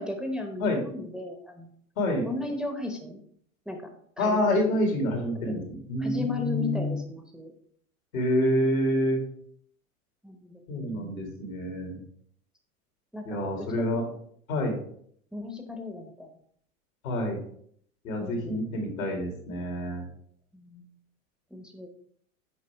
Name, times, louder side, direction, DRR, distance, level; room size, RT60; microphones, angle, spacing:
voice 1, 0.0-1.7 2.2-3.2 3.7-3.8 4.2-4.7 5.4-5.6 6.0-7.5 10.2-11.3 13.1-13.7 15.3-16.3 18.2-18.6 20.5-20.9 21.5-21.9, left 2 dB, ahead, 3 dB, 0.8 m, -36 dB
voice 2, 2.0-2.3 4.2-5.6 5.9-7.0 8.1-9.2 10.7-12.0 13.3-14.0 14.5-14.8 17.0-17.4 18.0-20.0, left 1 dB, 75° left, 2 dB, 2.3 m, -27 dB
7.1 x 4.7 x 3.4 m, 0.64 s
hypercardioid pair, 90°, 41 cm